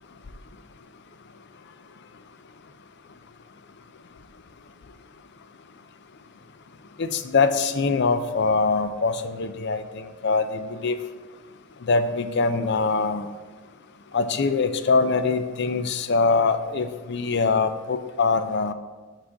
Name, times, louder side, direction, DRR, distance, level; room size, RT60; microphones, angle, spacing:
voice 1, 7.0-11.0 11.8-13.3 14.1-18.7, left 4 dB, 50° left, 10 dB, 0.5 m, -23 dB
5.9 x 5.0 x 6.3 m, 1.3 s
head